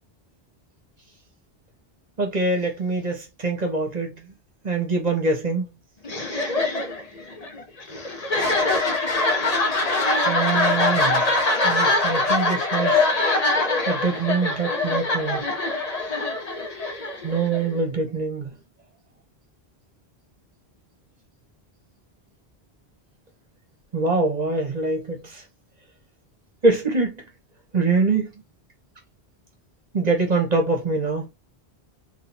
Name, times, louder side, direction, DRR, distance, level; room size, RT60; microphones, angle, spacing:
voice 1, 2.2-4.1 4.6-5.7 10.3-11.3 11.6-13.1 13.9-15.5 17.2-18.5 23.9-25.4 26.6-27.2 27.7-28.3 29.9-31.3, right 3 dB, 40° right, 1.4 m, -24 dB
sound 1, 6.0-17.7, left 2 dB, 40° left, 1.0 m, -23 dB
3.9 x 3.4 x 2.8 m
omnidirectional pair, 1.1 m